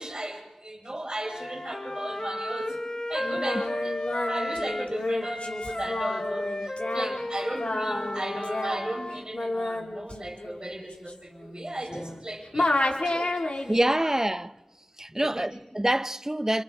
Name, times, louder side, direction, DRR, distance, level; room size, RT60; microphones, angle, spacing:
voice 1, 0.0-2.8 3.1-4.0 4.3-13.7 14.0-14.2 15.1-15.5, right 1 dB, 40° right, 4.5 m, -36 dB
Wind instrument woodwind instrument, 1.2-4.9 5.2-9.2, left 1 dB, 40° left, 1.6 m, -34 dB
Singing, 3.2-12.2 12.5-13.9, left 2 dB, 75° left, 2.4 m, -31 dB
voice 2, 13.7-14.5 15.0-16.6, right 1 dB, 25° right, 0.7 m, -26 dB
30.0 x 27.0 x 3.6 m
wide cardioid pair, 45°, 2 cm